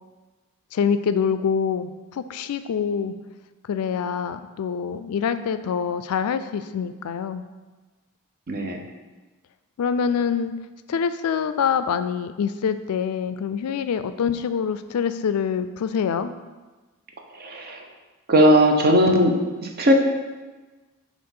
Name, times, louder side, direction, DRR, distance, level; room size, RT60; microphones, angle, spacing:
voice 1, 0.7-3.1 3.7-7.5 9.8-10.5 10.9-16.3, left 7 dB, 80° left, 11 dB, 0.4 m, -25 dB
voice 2, 8.5-8.8 17.4-17.8 18.3-19.9, equal, 45° right, 3 dB, 0.7 m, -18 dB
7.4 x 2.5 x 5.4 m, 1.2 s
head